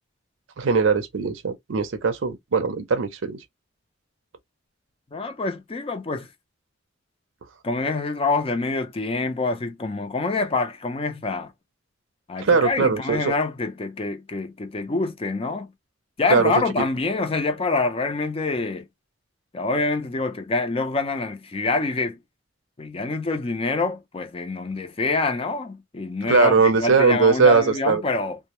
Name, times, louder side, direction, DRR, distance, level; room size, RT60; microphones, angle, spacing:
voice 1, 0.6-3.4 12.4-13.3 16.3-16.5 26.2-28.0, right 4 dB, 90° right, 0.5 m, -20 dB
voice 2, 5.1-6.3 7.6-11.5 12.3-15.7 16.2-18.8 19.5-22.2 22.8-28.4, left 3 dB, 30° left, 0.5 m, -26 dB
2.1 x 2.0 x 2.9 m
head